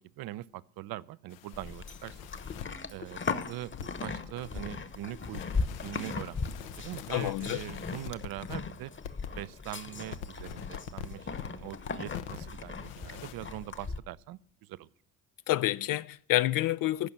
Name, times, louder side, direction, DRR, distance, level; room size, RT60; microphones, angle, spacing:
voice 1, 0.0-2.2 2.9-3.7 4.0-6.5 6.8-8.9 9.4-14.9, right 15 dB, 60° right, 0.6 m, -42 dB
sound 1, 1.3-2.7 3.7-4.1 4.5-8.6 9.0-9.5 9.9-11.5 11.8-12.5 12.7-13.3, left 8 dB, 85° left, 0.9 m, -44 dB
Livestock farm animals working animals, 1.5-14.0, left 4 dB, 30° left, 1.1 m, -38 dB
voice 2, 7.1-7.6 15.5-17.1, left 15 dB, 55° left, 0.4 m, -28 dB
14.5 x 6.0 x 7.9 m
hypercardioid pair, 50°, 41 cm